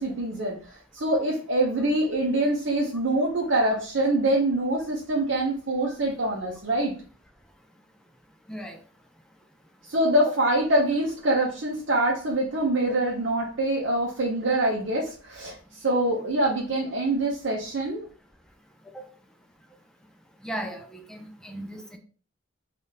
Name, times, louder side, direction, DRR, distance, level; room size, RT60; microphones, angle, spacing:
voice 1, 0.0-6.9 9.9-18.1, right 1 dB, 65° right, 0.6 m, -25 dB
voice 2, 20.4-22.0, right 1 dB, 5° left, 0.4 m, -36 dB
3.4 x 2.4 x 2.7 m
head